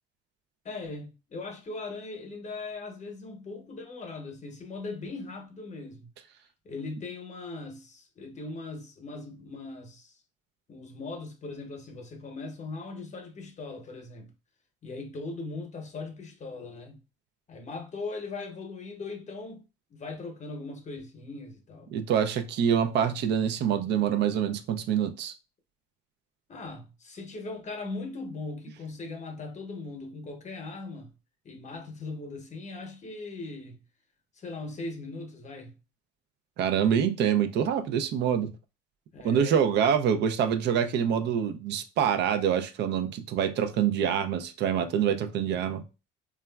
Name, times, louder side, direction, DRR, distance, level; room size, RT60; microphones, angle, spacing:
voice 1, 0.6-6.1 6.6-10.2 10.7-14.3 14.8-17.0 17.5-19.6 19.9-21.9 26.5-31.1 31.4-33.8 34.3-35.8 39.1-39.6 40.0-40.2, left 3 dB, 35° left, 0.8 m, -39 dB
voice 2, 21.9-25.3 36.6-38.5 39.2-45.8, right 8 dB, 60° right, 0.4 m, -26 dB
2.9 x 2.3 x 2.2 m
supercardioid pair, 95°, 20 cm